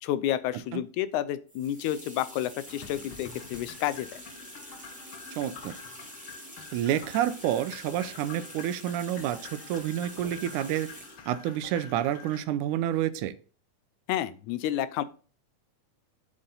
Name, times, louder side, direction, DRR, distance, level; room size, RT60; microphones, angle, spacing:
voice 1, 0.0-4.2 14.1-15.0, left 12 dB, 80° left, 15 dB, 1.9 m, -30 dB
sound 1, 1.5-11.3, equal, ahead, 2.5 m, -46 dB
sound 2, 2.7-12.4, left 6 dB, 55° left, 1.6 m, -47 dB
voice 2, 5.4-5.7 6.7-10.9 11.3-13.3, right 11 dB, 80° right, 14 dB, 2.1 m, -29 dB
8.9 x 7.6 x 3.9 m, 0.38 s
omnidirectional pair, 3.7 m